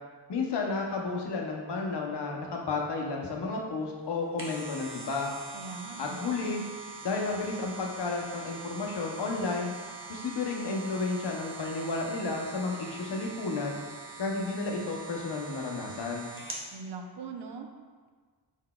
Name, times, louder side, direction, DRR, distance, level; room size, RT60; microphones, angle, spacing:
voice 1, 0.3-5.3 6.0-6.6 7.0-9.7 10.1-13.8 14.2-16.3, left 3 dB, 60° left, 0 dB, 0.7 m, -32 dB
sound 1, 4.1-16.7 17.1-17.2, right 3 dB, 30° right, 0.6 m, -44 dB
voice 2, 5.5-6.3 16.7-17.7, right 4 dB, 65° right, 4 dB, 0.5 m, -41 dB
4.5 x 3.9 x 2.2 m, 1.5 s
wide cardioid pair, 140°, 45 cm